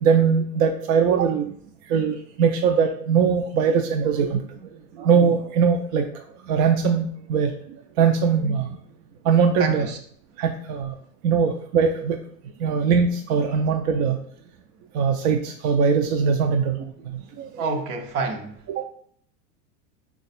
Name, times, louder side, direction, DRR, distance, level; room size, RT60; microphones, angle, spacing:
voice 1, 0.0-1.5 1.9-4.5 5.0-6.1 6.5-7.5 8.0-8.8 9.2-9.9 10.4-10.9 11.2-12.2 12.6-14.2 14.9-17.6 18.8-18.9, right 6 dB, 65° right, 3 dB, 0.5 m, -21 dB
voice 2, 9.6-10.0 17.6-18.6, right 3 dB, 80° right, 4 dB, 0.9 m, -28 dB
3.2 x 2.4 x 4.0 m, 0.63 s
supercardioid pair, 115°, 45 cm